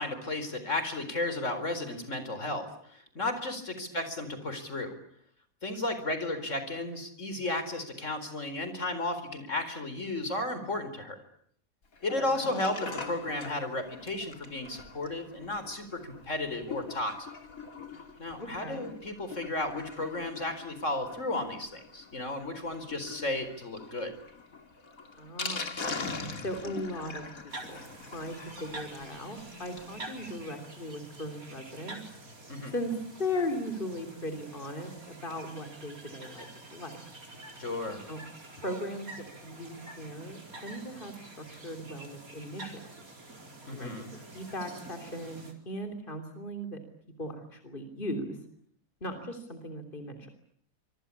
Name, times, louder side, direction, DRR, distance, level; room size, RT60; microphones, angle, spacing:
voice 1, 0.0-4.9 5.6-11.2 12.0-17.3 18.2-24.1 32.5-32.7 37.6-38.0 43.7-44.1, left 2 dB, 60° left, 10 dB, 4.6 m, -34 dB
Sink (filling or washing), 11.9-30.0 30.3-30.4 30.6-30.7 31.0-31.1, left 4 dB, 80° left, 2.9 m, -43 dB
voice 2, 18.4-18.9 25.2-25.8 26.4-27.3 27.6-32.0 32.6-37.0 38.1-38.2 38.6-39.1 39.3-42.9 43.7-46.8 47.2-48.4 49.0-50.3, left 1 dB, 35° left, 6 dB, 3.6 m, -38 dB
sound 1, 27.5-45.5, right 2 dB, 85° right, 4.7 m, -47 dB
26.0 x 25.0 x 8.5 m, 0.66 s
omnidirectional pair, 1.5 m